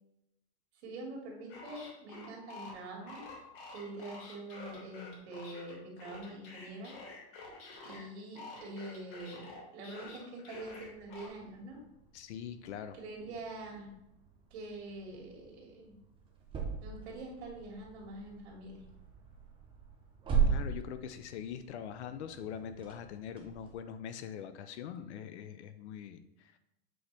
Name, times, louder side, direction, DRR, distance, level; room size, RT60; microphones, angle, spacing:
voice 1, 0.8-3.3 3.7-7.0 7.8-11.8 13.0-13.9 14.5-16.0 16.8-18.8, right 2 dB, 75° right, 0 dB, 2.2 m, -45 dB
sound 1, 1.5-8.0 8.4-11.3, left 3 dB, 50° left, 1.7 m, -48 dB
sound 2, 10.5-23.7, right 6 dB, 15° right, 0.9 m, -39 dB
voice 2, 12.1-13.0 20.5-26.5, left 8 dB, 85° left, 10 dB, 0.6 m, -43 dB
7.8 x 4.0 x 3.4 m, 0.86 s
supercardioid pair, 155°, 33 cm